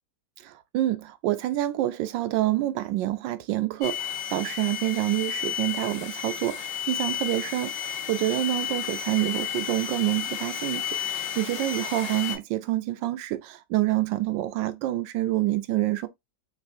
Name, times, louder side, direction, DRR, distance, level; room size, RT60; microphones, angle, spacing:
voice 1, 0.4-16.1, right 15 dB, 85° right, 1.3 m, -27 dB
sound 1, 3.8-12.4, left 9 dB, 75° left, 1.4 m, -32 dB
3.5 x 3.2 x 2.5 m
omnidirectional pair, 2.0 m